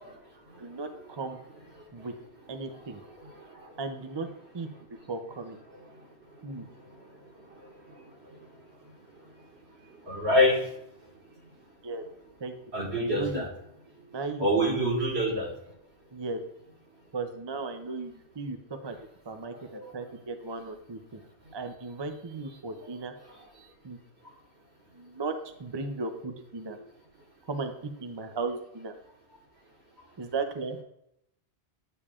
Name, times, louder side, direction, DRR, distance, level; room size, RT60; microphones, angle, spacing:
voice 1, 0.0-0.7 2.0-2.1 2.7-3.8 4.7-4.8 5.7-6.1 6.3-8.5 8.9-9.0 9.2-9.3 9.8-10.7 12.7-13.5 14.4-15.5 19.5-19.9 23.3-23.4, equal, 70° right, -2 dB, 2.0 m, -30 dB
voice 2, 0.6-1.4 1.9-2.1 2.5-3.0 3.8-4.3 4.5-4.7 5.1-5.6 6.4-6.7 11.8-12.0 12.4-12.5 13.0-13.4 14.1-14.9 16.1-16.4 17.1-18.6 18.8-19.0 19.3-21.2 21.5-23.1 23.8-24.0 24.9-25.3 25.6-26.8 27.5-28.9 30.2-30.8, right 3 dB, 35° right, 6 dB, 0.5 m, -36 dB
8.8 x 6.8 x 2.4 m, 0.78 s
omnidirectional pair, 1.1 m